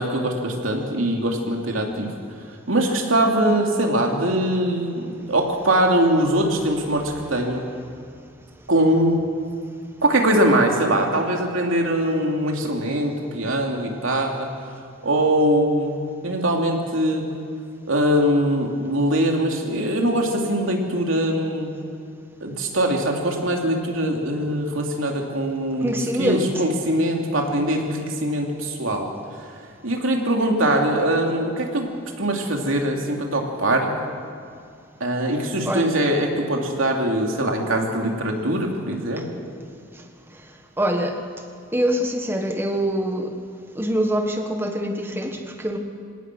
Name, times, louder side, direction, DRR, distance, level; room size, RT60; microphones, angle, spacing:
voice 1, 0.0-2.1 2.7-7.6 8.7-9.2 10.0-14.5 15.0-16.0 16.2-17.2 17.9-21.7 22.4-29.1 29.8-31.9 32.2-33.9 35.0-39.2, right 1 dB, 90° right, 1 dB, 2.9 m, -22 dB
voice 2, 25.8-26.5 35.7-35.9 40.8-41.2 41.7-43.4 43.7-45.8, equal, 10° right, 5 dB, 1.5 m, -24 dB
26.0 x 17.5 x 6.2 m, 2.3 s
head